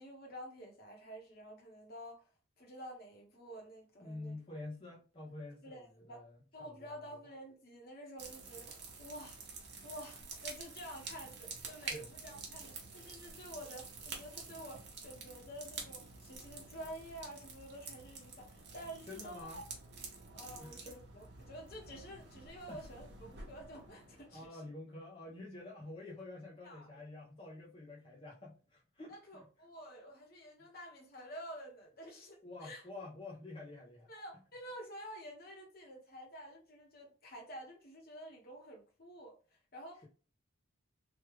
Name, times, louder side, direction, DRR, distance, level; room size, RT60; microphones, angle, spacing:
voice 1, 0.0-2.3 2.6-4.4 5.6-6.2 6.5-9.4 9.8-19.6 20.3-24.6 26.6-27.0 29.1-32.9 34.1-40.1, equal, 45° left, 1.0 m, -50 dB
voice 2, 4.0-7.2 11.8-12.1 19.1-19.6 20.6-21.0 22.7-22.8 24.3-29.5 30.6-30.7 32.4-34.1, left 2 dB, 25° left, 0.5 m, -48 dB
sound 1, 8.2-24.5, right 4 dB, 50° right, 0.9 m, -49 dB
3.2 x 2.3 x 3.1 m
head